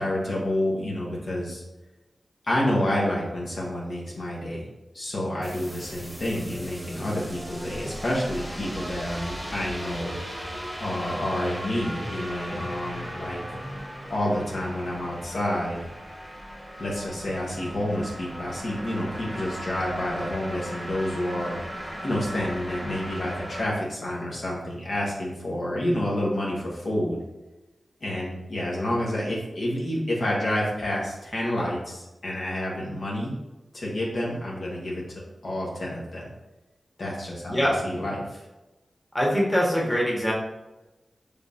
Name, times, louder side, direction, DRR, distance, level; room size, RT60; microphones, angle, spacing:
voice 1, 0.0-1.6 2.5-4.7 4.9-10.2 10.8-13.4 14.1-15.9 16.8-27.2 28.0-33.3 33.7-35.0 35.4-36.3 37.0-38.4, left 1 dB, 70° left, -5 dB, 1.1 m, -29 dB
sound 1, 5.4-23.6, equal, 5° right, 1.1 m, -37 dB
voice 2, 37.5-37.8 39.1-40.3, equal, 15° left, -4 dB, 1.4 m, -23 dB
5.1 x 3.3 x 2.6 m, 1.0 s
cardioid pair, 50°, 0 cm